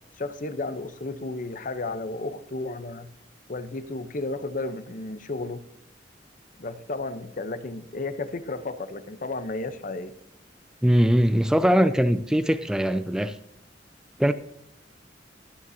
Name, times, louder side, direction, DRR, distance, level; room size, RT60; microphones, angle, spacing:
voice 1, 0.2-3.1 3.5-5.6 6.6-10.1, left 2 dB, 45° left, 0.8 m, -33 dB
voice 2, 10.8-13.4 14.2-14.3, equal, 5° right, 0.3 m, -21 dB
14.0 x 9.5 x 2.8 m
head